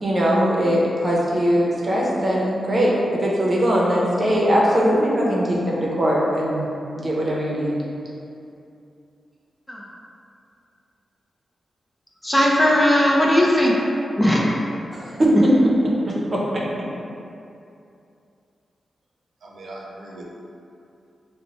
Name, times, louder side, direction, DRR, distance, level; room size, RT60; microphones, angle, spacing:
voice 1, 0.0-6.7 6.9-7.8 14.9-15.4 16.1-16.9, equal, 40° right, -4 dB, 0.8 m, -21 dB
voice 2, 12.2-13.7 14.2-14.5, equal, 15° left, -3 dB, 0.5 m, -17 dB
voice 3, 19.4-20.3, right 1 dB, 80° right, -4 dB, 0.5 m, -39 dB
3.0 x 2.2 x 4.0 m, 2.6 s
cardioid pair, 65°, 0 cm